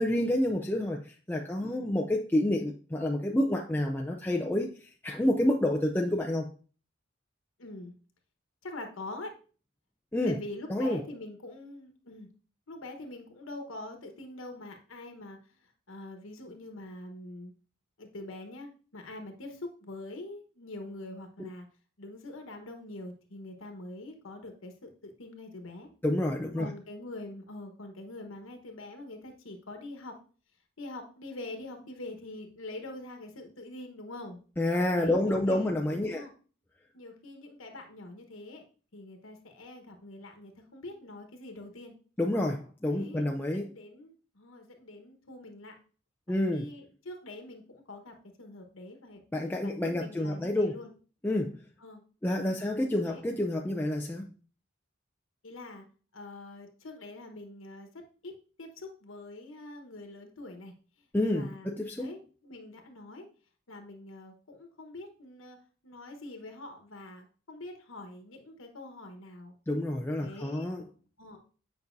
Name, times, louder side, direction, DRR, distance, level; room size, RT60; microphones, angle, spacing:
voice 1, 0.0-6.5 10.1-10.4 10.7-11.0 26.0-26.7 34.6-36.2 42.2-43.7 46.3-46.7 49.3-50.7 51.2-51.6 52.2-54.3 61.1-62.1 69.7-70.8, left 1 dB, 10° left, 0.4 m, -29 dB
voice 2, 1.6-1.9 7.6-7.9 8.6-9.3 10.2-12.3 12.7-15.4 15.9-17.5 18.0-21.7 22.0-25.9 26.6-30.2 30.8-34.4 35.0-35.7 36.0-36.3 36.9-38.6 38.9-41.9 42.9-43.2 43.6-45.7 46.3-49.2 49.6-50.9 51.8-52.0 52.3-53.2 55.4-55.8 56.1-60.7 61.3-63.3 63.7-65.6 65.8-69.5 70.2-70.7 71.2-71.4, left 2 dB, 80° left, 1.2 m, -44 dB
8.2 x 5.4 x 2.6 m
head